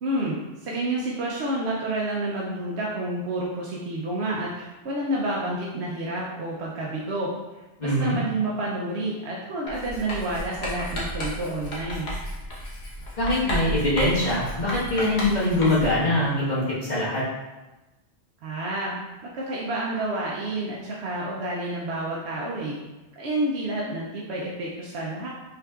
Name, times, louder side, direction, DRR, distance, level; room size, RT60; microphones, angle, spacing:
voice 1, 0.0-7.3 7.8-12.1 18.4-18.9 19.3-22.8 23.2-25.3, right 1 dB, 90° right, -5 dB, 1.0 m, -29 dB
voice 2, 7.8-8.2 13.2-17.2, left 1 dB, 45° left, -8 dB, 1.5 m, -23 dB
Writing, 9.7-16.1, equal, 85° left, 1.4 m, -33 dB
5.8 x 3.8 x 2.4 m, 1.1 s
omnidirectional pair, 1.1 m